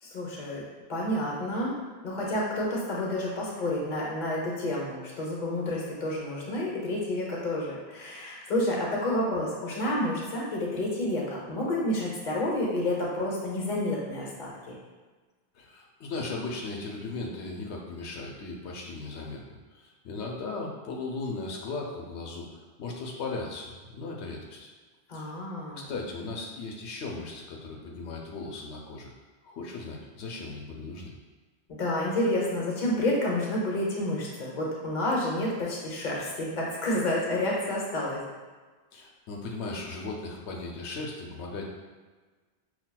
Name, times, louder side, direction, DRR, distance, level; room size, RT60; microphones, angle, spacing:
voice 1, 0.0-0.6 0.9-1.8 2.0-14.8 25.1-25.8 31.7-38.2, left 1 dB, 45° left, -4 dB, 0.9 m, -29 dB
voice 2, 15.5-24.7 25.1-25.3 25.7-29.1 29.4-31.1 38.9-41.7, left 3 dB, 90° left, -1 dB, 0.9 m, -37 dB
5.6 x 2.3 x 2.2 m, 1.4 s
omnidirectional pair, 1.1 m